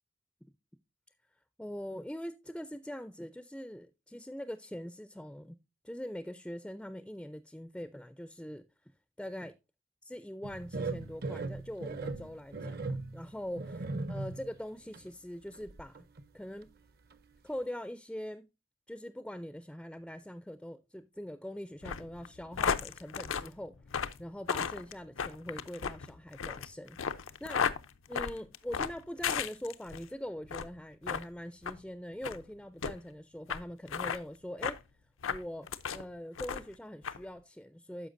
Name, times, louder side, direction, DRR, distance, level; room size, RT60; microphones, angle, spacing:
voice 1, 1.6-5.6 5.8-8.6 9.2-9.5 10.1-12.8 13.1-16.1 16.3-16.7 17.4-18.5 18.9-23.7 24.2-27.7 28.1-34.8 35.2-35.7 35.9-38.1, equal, 5° left, 0.3 m, -42 dB
sound 1, 10.4-14.6 14.9-15.1 15.5-16.3 16.6-16.7 17.1-17.2, right 3 dB, 50° right, 0.6 m, -38 dB
sound 2, 21.8-30.1 30.4-30.7 31.1-31.2 31.6-31.8 32.2-32.4 32.8-32.9 33.5-33.6 33.9-34.2 34.6-34.8 35.2-36.0 36.4-36.7 37.0-37.2, left 6 dB, 85° left, 0.6 m, -34 dB
10.0 x 6.7 x 2.5 m
head